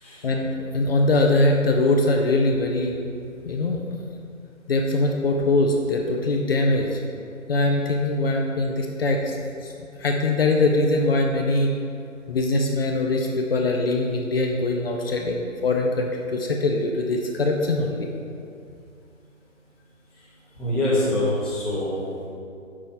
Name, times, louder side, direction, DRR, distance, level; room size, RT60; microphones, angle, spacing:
voice 1, 0.2-3.0 3.4-3.9 4.7-7.0 7.5-9.4 9.6-9.7 10.0-11.7 12.3-18.1, left 2 dB, 45° left, 1 dB, 0.7 m, -22 dB
voice 2, 20.6-22.0, left 1 dB, ahead, -12 dB, 1.0 m, -24 dB
6.5 x 6.2 x 4.3 m, 2.4 s
figure-of-eight pair, 145°, 40 cm